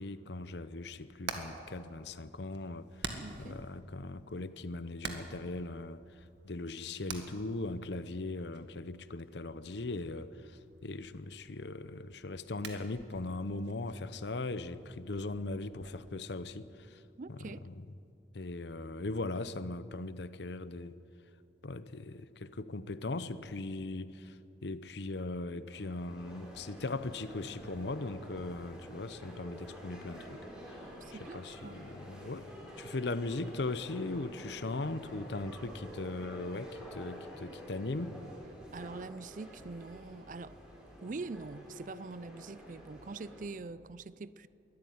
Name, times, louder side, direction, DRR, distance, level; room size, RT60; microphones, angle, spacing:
voice 1, 0.0-3.1 3.4-6.0 6.4-17.0 17.3-17.8 18.3-21.0 21.6-30.4 30.7-30.8 31.1-32.5 32.8-38.2, left 2 dB, 70° left, 0.8 m, -39 dB
Hammer, 0.8-16.0, right 4 dB, 75° right, 1.9 m, -49 dB
voice 2, 3.2-3.6 17.2-17.7 30.9-31.9 38.7-40.6 41.0-44.5, right 3 dB, 45° right, 0.4 m, -44 dB
sound 1, 25.7-43.4, equal, 5° right, 4.9 m, -49 dB
22.0 x 13.5 x 9.5 m
head